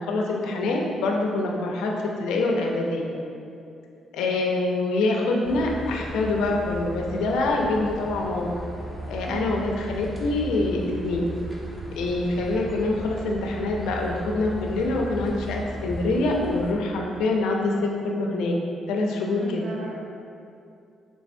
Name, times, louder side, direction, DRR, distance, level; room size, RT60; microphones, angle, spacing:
voice 1, 0.0-3.0 4.1-8.5 9.1-11.2 12.0-18.6 18.9-19.7, left 2 dB, 90° left, 0 dB, 0.5 m, -25 dB
sound 1, 5.4-16.7, right 1 dB, 5° right, 0.8 m, -36 dB
voice 2, 9.3-9.6 19.4-20.0, right 4 dB, 60° right, -3 dB, 0.4 m, -36 dB
4.2 x 3.3 x 2.6 m, 2.6 s
cardioid pair, 90°, 0 cm